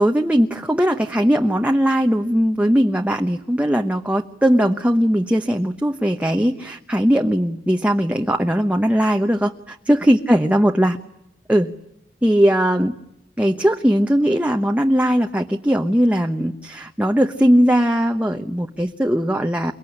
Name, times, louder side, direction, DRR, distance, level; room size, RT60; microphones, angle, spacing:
voice 1, 0.0-11.0 11.5-11.7 12.2-13.0 13.4-19.7, equal, 10° right, 3 dB, 1.0 m, -19 dB
30.0 x 18.5 x 10.0 m, 0.81 s
head